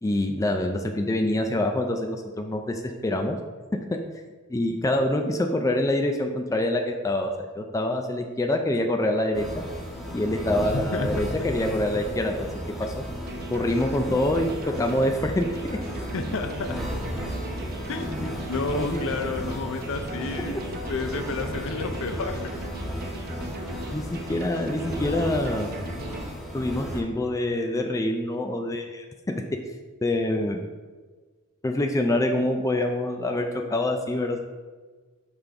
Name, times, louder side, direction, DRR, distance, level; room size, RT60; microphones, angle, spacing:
voice 1, 0.0-3.4 4.5-9.6 10.1-12.4 12.8-13.0 13.5-15.8 18.1-18.3 18.8-19.0 23.9-25.7 26.5-29.4 30.0-30.6 31.6-34.4, left 1 dB, 15° left, 3 dB, 0.4 m, -26 dB
sound 1, 9.3-27.0, equal, ahead, 0.8 m, -34 dB
voice 2, 10.7-11.1 16.1-16.8 17.9-18.2 18.5-20.6 20.9-22.4, left 3 dB, 65° left, 7 dB, 0.6 m, -30 dB
globe run synth, 13.3-26.2, right 2 dB, 45° right, 0.7 m, -40 dB
5.8 x 5.1 x 3.5 m, 1.4 s
head